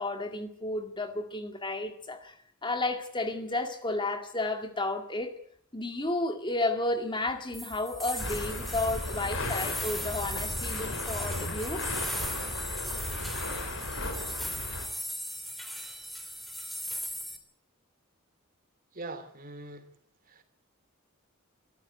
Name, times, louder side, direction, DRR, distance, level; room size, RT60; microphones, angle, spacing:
voice 1, 0.0-5.4 5.7-11.8, left 2 dB, 20° left, 2.1 m, -32 dB
sound 1, 7.5-17.4, equal, ahead, 3.1 m, -38 dB
sound 2, 8.2-14.9, left 2 dB, 65° left, 4.8 m, -35 dB
voice 2, 18.9-19.9 20.3-20.4, right 2 dB, 40° right, 3.1 m, -42 dB
23.5 x 14.0 x 9.4 m
head